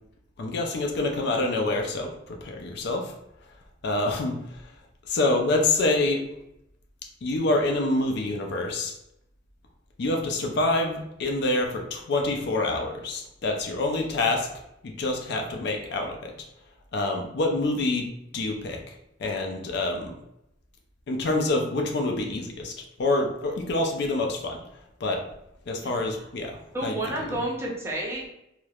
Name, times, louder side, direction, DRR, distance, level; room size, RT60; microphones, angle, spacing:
voice 1, 0.4-3.1 3.8-4.6 5.1-6.3 7.2-8.9 10.0-14.5 14.8-16.3 16.9-18.1 18.3-18.9 19.2-20.1 21.1-24.6 25.0-25.2 25.7-27.0 27.3-27.4, left 2 dB, 65° left, 2 dB, 0.4 m, -26 dB
voice 2, 26.7-28.3, right 1 dB, 15° right, -3 dB, 0.5 m, -30 dB
3.1 x 2.0 x 2.3 m, 0.81 s
head